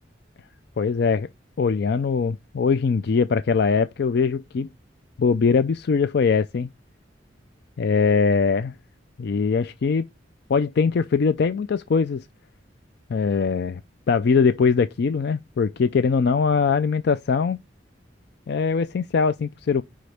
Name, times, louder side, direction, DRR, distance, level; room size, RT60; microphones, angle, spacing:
voice 1, 0.8-1.3 1.6-4.7 5.2-6.7 7.8-8.7 9.2-10.1 10.5-12.3 13.1-13.8 14.1-17.6 18.5-19.8, left 5 dB, 60° left, 0.4 m, -21 dB
9.3 x 3.8 x 3.3 m
head